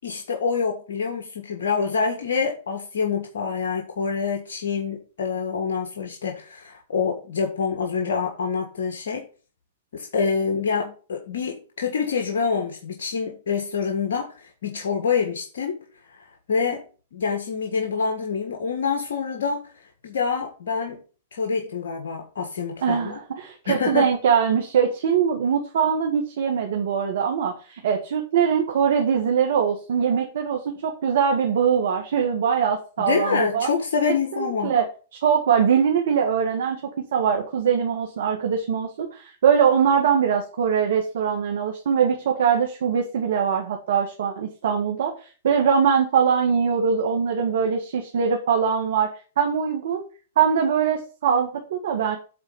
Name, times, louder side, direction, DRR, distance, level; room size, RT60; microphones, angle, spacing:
voice 1, 0.0-9.2 9.9-15.8 16.5-16.8 17.1-19.7 20.0-21.0 21.3-23.2 23.6-24.1 33.0-34.7, left 5 dB, 75° left, 2 dB, 1.7 m, -26 dB
voice 2, 22.8-33.7 34.3-34.8 35.1-36.8 37.1-49.1 49.4-50.0 50.4-52.2, right 7 dB, 70° right, 3 dB, 1.7 m, -22 dB
8.7 x 4.1 x 6.9 m, 0.37 s
hypercardioid pair, 125°, 0 cm